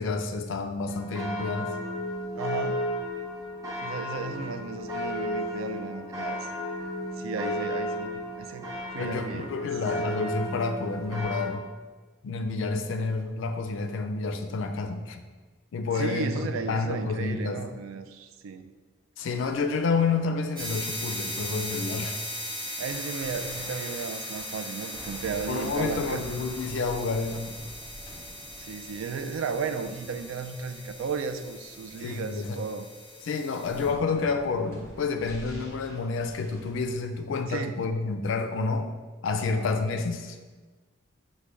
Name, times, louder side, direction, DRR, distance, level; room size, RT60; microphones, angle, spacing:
voice 1, 0.0-1.7 9.0-11.6 12.2-15.2 15.7-17.6 19.2-22.2 25.5-27.5 32.0-32.6 33.2-38.9 39.2-40.4, left 4 dB, 70° left, 7 dB, 0.4 m, -29 dB
sound 1, 0.9-11.5, left 1 dB, 15° right, 0.6 m, -33 dB
voice 2, 2.3-2.9 3.8-6.5 7.2-9.7 15.9-18.7 22.8-26.3 28.6-32.9 37.5-37.8 39.4-39.7, right 5 dB, 85° right, 9 dB, 0.3 m, -35 dB
sound 2, 19.2-37.0, equal, 15° left, 0.8 m, -48 dB
sound 3, 20.6-33.9, equal, 45° right, 0.9 m, -39 dB
6.2 x 2.2 x 3.3 m, 1.3 s
head